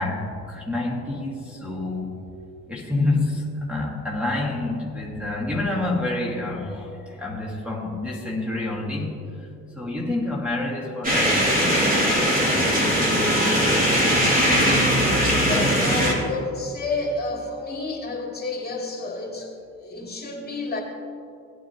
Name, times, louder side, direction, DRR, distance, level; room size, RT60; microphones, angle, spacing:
voice 1, 0.0-2.2 2.7-9.5 9.7-11.8 12.2-13.0, left 2 dB, 5° right, -6 dB, 2.0 m, -28 dB
sound 1, 11.0-16.1, equal, 30° right, 3.0 m, -20 dB
voice 2, 15.4-20.8, left 3 dB, 30° left, -2 dB, 2.8 m, -30 dB
18.5 x 9.1 x 3.0 m, 2.6 s
cardioid pair, 90°, 30 cm